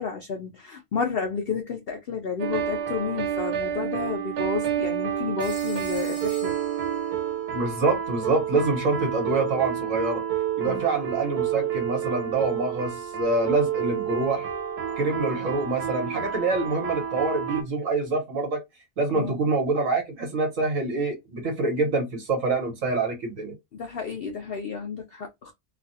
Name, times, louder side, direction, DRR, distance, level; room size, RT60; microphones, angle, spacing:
voice 1, 0.0-6.5 10.6-10.8 19.1-19.4 23.7-25.5, left 5 dB, 75° left, 0.5 m, -31 dB
sound 1, 2.4-17.6, right 9 dB, 75° right, 1.3 m, -29 dB
Telephone, 5.4-7.5, equal, 35° left, 1.7 m, -44 dB
voice 2, 7.5-10.2 10.6-14.5 15.0-18.6 19.0-23.5, right 3 dB, 55° right, 1.4 m, -26 dB
3.2 x 2.3 x 2.7 m
omnidirectional pair, 1.7 m